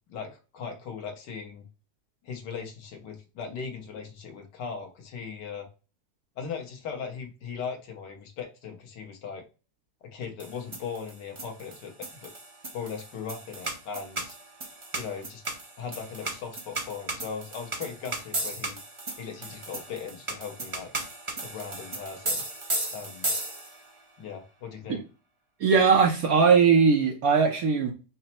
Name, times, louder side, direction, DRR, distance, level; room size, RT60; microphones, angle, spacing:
voice 1, 0.1-1.6 2.2-5.7 6.4-9.4 10.0-12.3 12.7-14.4 14.9-15.4 15.8-18.8 19.2-20.9 21.4-22.4 22.9-23.3 24.2-25.0, left 6 dB, 85° left, 3 dB, 1.6 m, -38 dB
sound 1, 10.4-23.9, right 2 dB, 35° right, 0.5 m, -35 dB
voice 2, 25.6-27.9, right 5 dB, 65° right, 1 dB, 1.1 m, -20 dB
5.4 x 2.0 x 4.2 m, 0.32 s
omnidirectional pair, 1.8 m